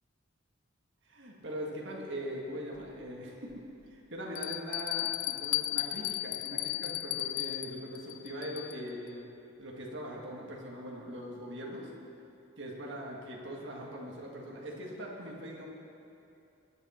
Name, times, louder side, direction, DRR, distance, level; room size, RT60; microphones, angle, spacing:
voice 1, 1.1-9.3 9.6-11.9 12.6-15.7, equal, 60° right, -3 dB, 1.8 m, -41 dB
Bell, 2.7-2.8 3.5-3.6 4.4-8.9, left 16 dB, 85° left, 0.4 m, -35 dB
21.0 x 8.1 x 4.3 m, 2.7 s
head